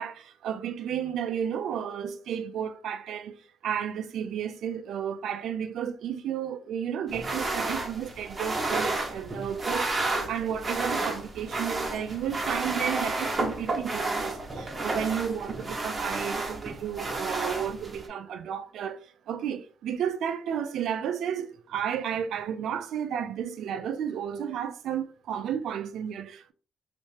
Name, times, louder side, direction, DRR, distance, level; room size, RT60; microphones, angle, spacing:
voice 1, 0.0-3.4 3.6-26.5, right 8 dB, 75° right, 0.4 m, -32 dB
sound 1, 7.1-18.1, right 2 dB, 30° right, 0.9 m, -31 dB
3.2 x 3.0 x 3.3 m
cardioid pair, 90°, 0 cm